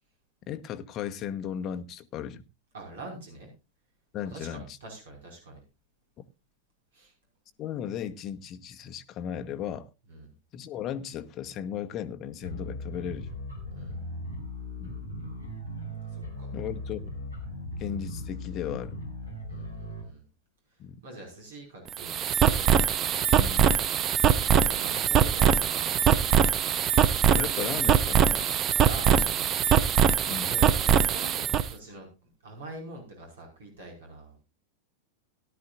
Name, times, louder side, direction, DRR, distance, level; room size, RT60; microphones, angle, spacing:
voice 1, 0.5-2.4 4.1-4.8 7.6-9.9 10.5-13.3 14.8-14.9 16.5-17.1 17.8-19.0 20.8-21.0 23.4-23.7 27.3-28.5 29.2-29.3 30.3-30.5, left 9 dB, 35° left, 1.0 m, -36 dB
voice 2, 2.7-3.5 4.2-5.6 6.9-7.1 10.1-10.3 13.7-14.0 16.1-16.5 19.5-20.2 21.0-22.7 24.5-26.3 28.7-29.5 30.4-32.1 32.4-34.4, right 2 dB, 60° right, 5.4 m, -44 dB
sound 1, 12.4-20.0, left 1 dB, 90° right, 6.8 m, -38 dB
sound 2, 21.9-31.7, right 8 dB, 30° right, 0.8 m, -22 dB
17.5 x 12.0 x 2.5 m
figure-of-eight pair, 90°, 0 cm